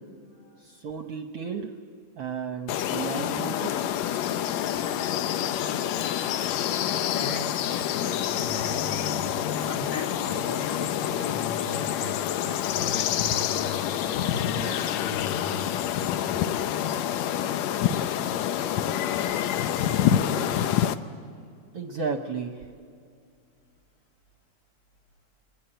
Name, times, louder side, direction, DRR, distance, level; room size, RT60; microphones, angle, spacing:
voice 1, 0.6-1.7 2.2-3.7 21.7-22.6, right 5 dB, 65° right, 5 dB, 1.6 m, -33 dB
sound 1, 2.7-20.9, left 10 dB, 75° left, 1.8 m, -27 dB
voice 2, 5.9-6.8 7.1-13.8 14.2-15.7, left 2 dB, 50° left, 1 dB, 2.9 m, -38 dB
26.0 x 20.5 x 9.0 m, 2.3 s
omnidirectional pair, 3.5 m